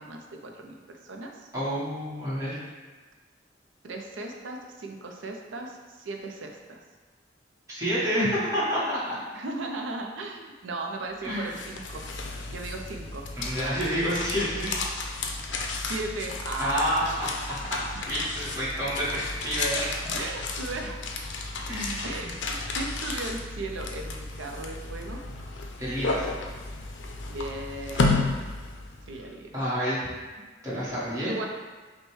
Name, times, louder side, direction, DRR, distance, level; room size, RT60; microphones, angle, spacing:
voice 1, 0.0-1.5 3.8-6.8 9.3-12.0 12.5-13.3 15.8-17.3 17.9-18.0 20.0-21.0 21.5-21.6 22.0-25.2 27.3-28.2 29.1-29.5 31.2-31.5, right 2 dB, 85° right, 2 dB, 0.5 m, -37 dB
voice 2, 1.5-2.6 7.7-9.2 11.2-11.5 13.4-14.7 16.6-19.9 21.7-22.3 25.8-26.2 29.5-30.0 30.6-31.3, equal, 15° right, -9 dB, 1.2 m, -29 dB
sound 1, 11.2-29.3, left 3 dB, 70° left, 0.5 m, -33 dB
6.1 x 2.2 x 3.1 m, 1.4 s
head